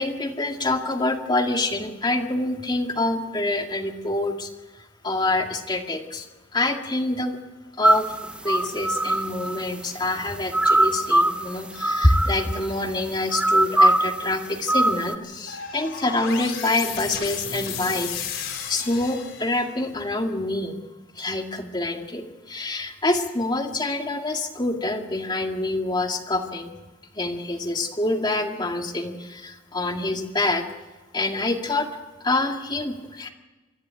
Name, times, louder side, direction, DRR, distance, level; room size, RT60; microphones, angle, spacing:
voice 1, 0.0-4.5 4.8-6.3 6.5-7.4 7.8-8.2 8.4-18.2 18.7-20.8 21.2-26.7 27.1-30.7 31.1-31.9 32.2-33.3, left 2 dB, 20° left, 3 dB, 2.1 m, -26 dB
sound 1, 7.8-9.6 10.5-11.5 11.8-12.7 13.3-14.3 14.7-15.2, right 1 dB, 5° right, 0.7 m, -21 dB
sound 2, 15.5-19.8, left 7 dB, 75° left, 5.2 m, -33 dB
23.5 x 14.5 x 9.0 m, 1.2 s
head